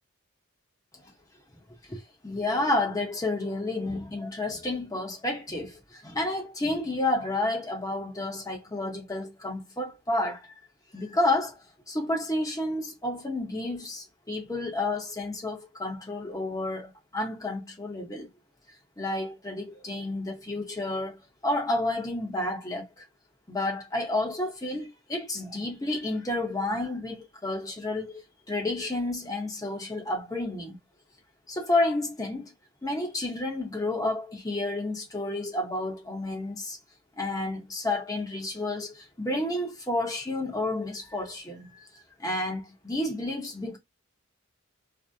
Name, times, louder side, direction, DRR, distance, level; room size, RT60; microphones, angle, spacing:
voice 1, 1.9-10.5 10.9-11.6 11.9-18.3 19.0-23.0 23.5-28.1 28.5-30.8 31.5-32.5 32.8-36.8 37.2-41.9 42.2-43.8, left 2 dB, 15° left, 0.8 m, -30 dB
2.7 x 2.0 x 3.3 m
head